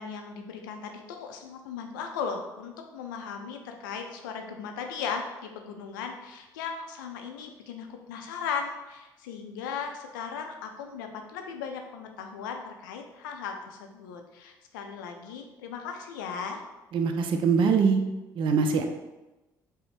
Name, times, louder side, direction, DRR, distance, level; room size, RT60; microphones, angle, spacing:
voice 1, 0.0-16.6, left 6 dB, 75° left, 4 dB, 0.4 m, -37 dB
voice 2, 16.9-18.0 18.4-18.8, right 5 dB, 50° right, 5 dB, 0.4 m, -23 dB
5.0 x 2.1 x 3.1 m, 1.0 s
hypercardioid pair, 50°, 11 cm